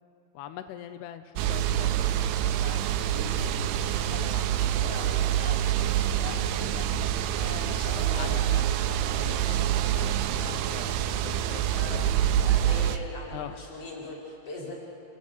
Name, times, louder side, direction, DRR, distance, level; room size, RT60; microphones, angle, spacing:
voice 1, 0.3-6.9 7.3-12.0 13.3-13.6, left 11 dB, 80° left, 9 dB, 2.4 m, -43 dB
sound 1, 1.4-13.0, right 11 dB, 85° right, 3.2 m, -26 dB
voice 2, 4.8-5.1 7.6-8.5 11.6-14.7, left 2 dB, 35° left, -4 dB, 5.5 m, -40 dB
29.0 x 16.0 x 8.2 m, 2.9 s
omnidirectional pair, 5.4 m